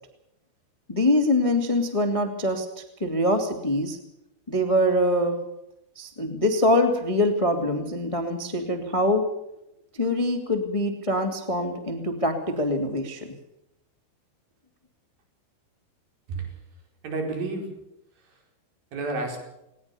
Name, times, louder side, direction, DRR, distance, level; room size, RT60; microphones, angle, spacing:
voice 1, 0.9-2.6 3.0-4.0 4.5-5.4 5.9-9.2 9.9-13.3, left 1 dB, 25° left, 5 dB, 0.7 m, -24 dB
voice 2, 17.0-17.7 18.2-18.4 18.9-19.5, right 3 dB, 50° right, 3 dB, 6.1 m, -31 dB
20.0 x 19.5 x 7.0 m, 0.85 s
omnidirectional pair, 5.5 m